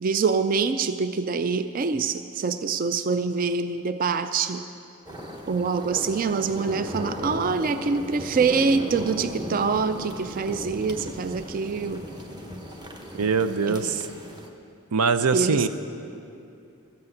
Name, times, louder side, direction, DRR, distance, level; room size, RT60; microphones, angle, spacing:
voice 1, 0.0-4.7 5.5-12.1 13.7-14.0 15.3-15.7, right 5 dB, 40° right, 10 dB, 0.3 m, -25 dB
sound 1, 5.1-14.5, equal, 20° right, 0.9 m, -37 dB
voice 2, 13.1-14.1 14.9-15.7, right 5 dB, 90° right, 11 dB, 0.6 m, -23 dB
13.5 x 8.4 x 7.8 m, 2.6 s
head